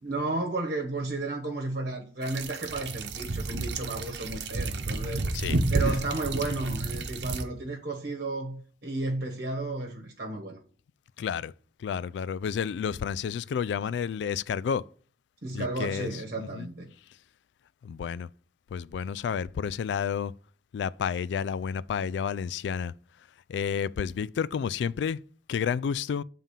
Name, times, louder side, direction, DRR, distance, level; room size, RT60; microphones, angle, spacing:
voice 1, 0.0-5.2 5.7-10.6 15.4-16.9, right 2 dB, 60° right, 1.2 m, -33 dB
sound 1, 2.2-7.4, right 2 dB, 75° right, 0.9 m, -31 dB
voice 2, 11.2-11.5 11.8-14.8 15.5-16.1 16.4-16.7 17.8-18.3 18.7-20.3 20.7-22.9 23.5-25.2 25.5-26.2, left 7 dB, 75° left, 0.3 m, -30 dB
7.2 x 3.7 x 5.6 m
head